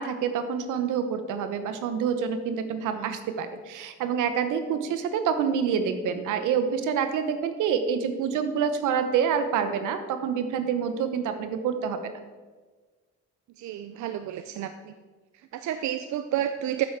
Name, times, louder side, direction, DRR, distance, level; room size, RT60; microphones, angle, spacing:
voice 1, 0.0-12.0, right 7 dB, 85° right, 9 dB, 1.0 m, -27 dB
voice 2, 13.6-14.9 15.3-16.9, right 11 dB, 70° right, 9 dB, 0.5 m, -31 dB
9.0 x 7.3 x 4.6 m, 1.4 s
cardioid pair, 90°, 30 cm